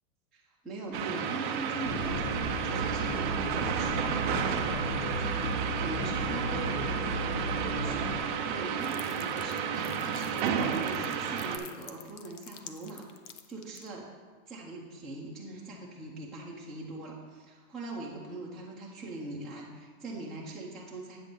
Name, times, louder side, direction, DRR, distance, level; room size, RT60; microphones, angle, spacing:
voice 1, 0.3-13.0 13.5-14.1 14.5-21.2, right 2 dB, ahead, -9 dB, 0.7 m, -42 dB
sound 1, 0.9-11.6, right 7 dB, 35° right, 0.4 m, -32 dB
sound 2, 1.8-8.2, equal, 80° left, 1.5 m, -35 dB
sound 3, 8.8-13.9, left 9 dB, 50° left, 0.7 m, -49 dB
8.4 x 3.8 x 6.8 m, 1.5 s
supercardioid pair, 150°, 47 cm